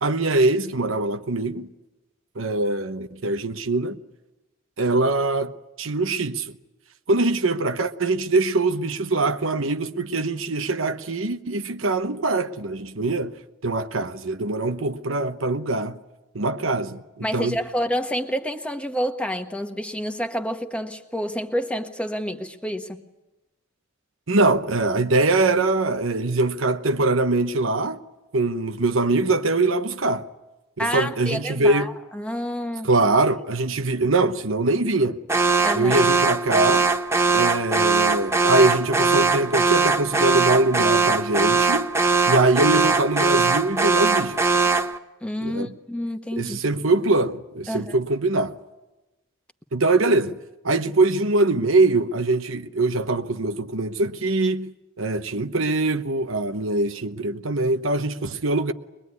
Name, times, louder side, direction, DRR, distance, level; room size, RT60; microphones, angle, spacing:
voice 1, 0.0-1.7 2.3-4.0 4.8-5.5 5.8-6.5 7.1-13.4 13.6-16.0 16.3-17.6 24.3-28.0 28.3-30.3 30.8-32.0 32.8-35.2 35.7-36.9 37.3-41.9 42.3-44.4 45.4-45.7 46.3-48.6 49.7-50.4 50.6-58.7, right 2 dB, 75° right, 1.1 m, -23 dB
voice 2, 17.2-23.0 30.8-32.9 35.6-36.0 45.2-46.6 47.7-48.0, equal, 5° left, 1.3 m, -28 dB
Alarm, 35.3-45.0, right 4 dB, 15° right, 0.9 m, -21 dB
23.0 x 22.0 x 9.6 m
head